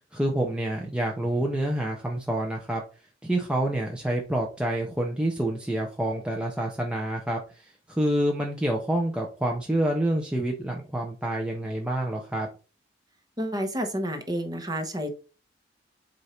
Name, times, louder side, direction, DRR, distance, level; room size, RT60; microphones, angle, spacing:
voice 1, 0.1-2.8 3.2-12.5, right 1 dB, 5° right, -1 dB, 0.8 m, -27 dB
voice 2, 13.4-15.1, equal, 20° right, 5 dB, 1.1 m, -30 dB
8.1 x 2.7 x 4.4 m, 0.34 s
head